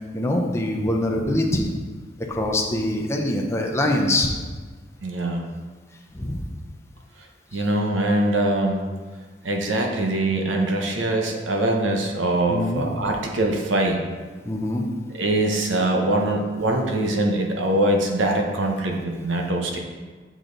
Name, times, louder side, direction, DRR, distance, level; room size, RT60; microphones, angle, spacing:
voice 1, 0.1-1.7 2.3-4.3 6.1-6.5 7.5-7.6 12.5-12.8 14.4-14.8, left 1 dB, 15° left, 0 dB, 0.7 m, -24 dB
voice 2, 5.0-5.4 7.5-8.9 9.4-14.0 15.2-19.8, right 1 dB, 85° right, 2 dB, 0.9 m, -23 dB
6.2 x 5.1 x 3.9 m, 1.4 s
head